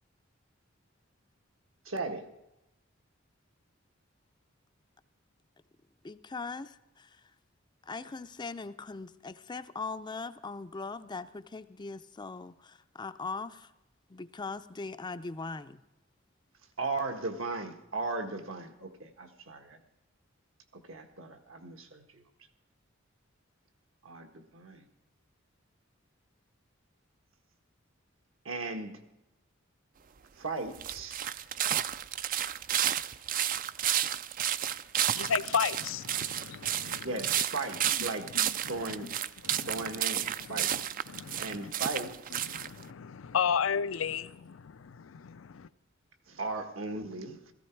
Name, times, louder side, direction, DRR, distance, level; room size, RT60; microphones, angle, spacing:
voice 1, 1.9-2.3 16.8-19.8 20.9-22.2 24.0-24.9 28.5-28.9 30.4-31.2 37.0-38.3 38.7-39.1 39.7-40.7 41.4-42.5 46.3-47.5, right 3 dB, 75° right, 1.6 m, -37 dB
voice 2, 6.0-7.1 7.9-13.7 14.1-15.8, left 4 dB, 20° left, 0.5 m, -40 dB
sound 1, 30.7-42.8, right 11 dB, 45° right, 0.4 m, -31 dB
voice 3, 35.1-37.4 37.8-39.1 39.4-40.0 40.4-41.7 42.3-45.7, left 7 dB, 75° left, 0.5 m, -35 dB
16.5 x 14.5 x 4.6 m
head